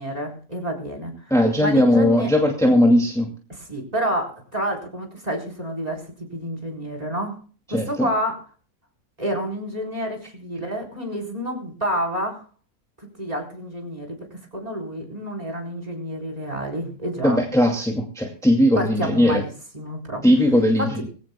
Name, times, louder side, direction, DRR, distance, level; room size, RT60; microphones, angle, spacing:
voice 1, 0.0-1.2 1.6-2.3 3.5-7.4 7.7-8.4 9.2-12.4 13.2-17.4 18.8-20.2 20.8-21.0, equal, 25° right, 3 dB, 4.4 m, -29 dB
voice 2, 1.3-3.3 7.7-8.1 17.2-19.4 20.2-21.1, left 1 dB, ahead, 0 dB, 2.2 m, -18 dB
21.5 x 16.0 x 2.3 m, 0.38 s
omnidirectional pair, 1.6 m